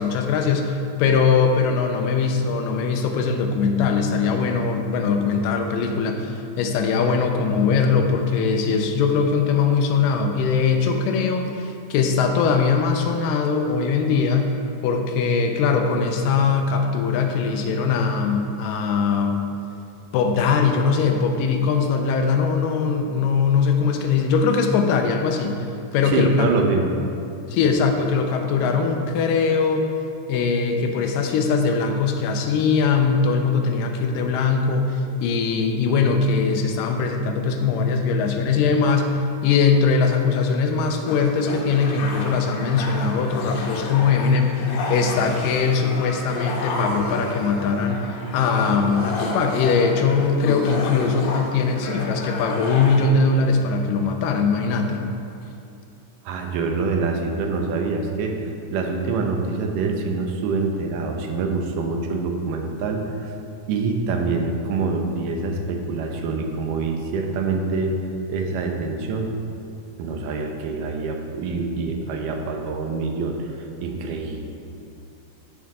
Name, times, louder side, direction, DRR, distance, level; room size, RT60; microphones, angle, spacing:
voice 1, 0.0-14.5 14.8-19.4 20.1-25.6 25.9-26.7 27.5-29.9 30.3-55.1, left 5 dB, 90° left, 4 dB, 2.3 m, -21 dB
voice 2, 26.1-26.9 56.3-63.3 63.7-68.0 68.3-69.3 70.0-74.5, right 4 dB, 85° right, 2 dB, 2.4 m, -25 dB
sound 1, 41.1-53.0, left 2 dB, 70° left, 2.1 m, -31 dB
13.5 x 4.7 x 3.6 m, 2.6 s
omnidirectional pair, 3.8 m